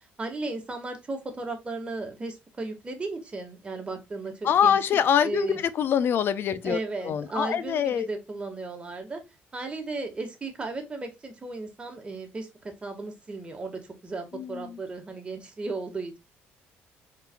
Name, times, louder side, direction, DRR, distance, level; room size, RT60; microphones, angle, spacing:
voice 1, 0.2-4.8 5.2-5.6 6.6-9.2 9.5-12.5 12.8-16.2, right 3 dB, 25° right, 1.5 m, -35 dB
voice 2, 4.4-8.1 14.3-14.8, left 8 dB, 55° left, 0.5 m, -25 dB
4.6 x 3.9 x 2.3 m
cardioid pair, 95°, 4 cm